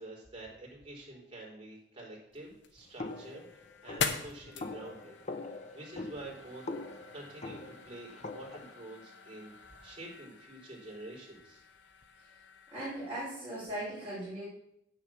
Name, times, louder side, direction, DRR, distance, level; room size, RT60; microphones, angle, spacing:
voice 1, 0.0-5.2 5.4-6.7 7.1-9.5 9.8-11.6, right 2 dB, 30° right, -4 dB, 4.1 m, -48 dB
sound 1, 2.3-13.3, left 5 dB, 70° left, 1.1 m, -44 dB
sound 2, 3.0-8.7, left 2 dB, 40° left, 0.9 m, -43 dB
voice 2, 12.7-14.5, right 1 dB, 10° right, -12 dB, 5.4 m, -38 dB
9.1 x 6.7 x 7.4 m, 0.78 s
head